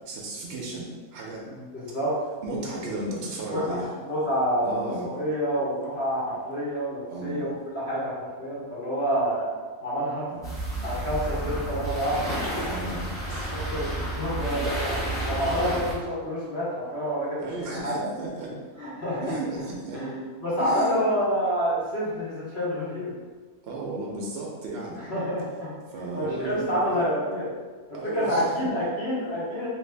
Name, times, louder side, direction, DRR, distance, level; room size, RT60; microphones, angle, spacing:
voice 1, 0.0-1.5 2.4-3.9 4.6-5.1 7.1-7.5 10.3-10.5 12.7-13.5 17.4-18.6 19.2-20.0 20.6-21.0 23.6-25.0 25.9-27.0 27.9-28.7, right 2 dB, 65° right, -2 dB, 0.7 m, -34 dB
voice 2, 1.5-2.2 3.5-9.5 9.8-10.3 10.8-12.6 13.5-15.0 15.3-18.1 18.8-19.3 19.9-23.2 25.0-25.7 26.1-27.5 27.9-29.7, equal, 50° left, -8 dB, 1.1 m, -28 dB
sound 1, 10.4-15.9, right 1 dB, 5° left, 0.8 m, -30 dB
3.1 x 2.5 x 3.3 m, 1.4 s
omnidirectional pair, 1.5 m